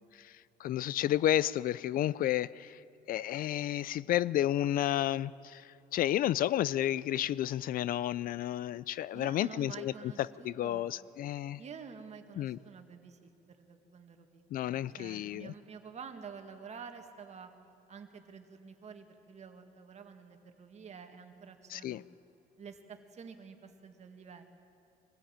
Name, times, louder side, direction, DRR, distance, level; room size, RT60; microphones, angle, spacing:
voice 1, 0.6-2.8 3.1-10.1 10.4-11.6 12.4-12.6 14.5-15.5 21.7-22.0, left 12 dB, 60° left, 20 dB, 0.4 m, -31 dB
voice 2, 9.1-10.9 11.6-17.5 17.9-22.0 22.6-24.4, right 6 dB, 40° right, 6 dB, 1.9 m, -49 dB
22.5 x 15.0 x 8.8 m, 2.7 s
cardioid pair, 110°, 17 cm